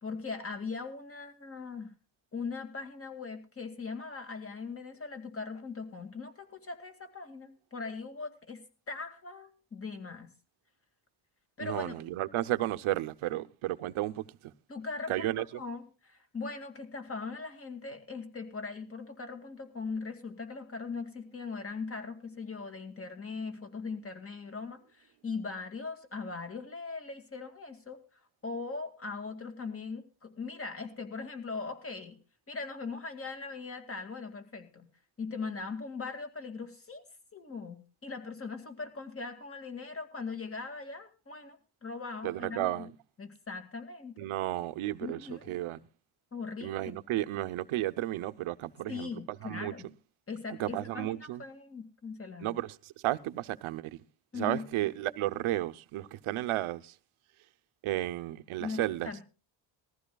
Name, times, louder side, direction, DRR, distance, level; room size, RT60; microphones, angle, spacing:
voice 1, 0.0-1.9 2.3-10.3 11.6-11.9 14.7-28.0 28.4-32.2 32.5-34.9 35.2-37.0 37.3-42.9 43.2-44.2 45.0-45.5 46.3-47.0 48.9-49.9 50.3-52.6 54.3-54.6 58.6-59.2, left 4 dB, 30° left, 2.1 m, -40 dB
voice 2, 11.6-14.5 15.1-15.5 42.2-42.9 44.2-45.8 46.6-49.1 49.4-49.7 50.6-51.4 52.4-54.0 54.3-56.9 57.8-59.1, right 15 dB, 85° right, 0.8 m, -33 dB
20.0 x 14.5 x 2.3 m
cardioid pair, 105°, 48 cm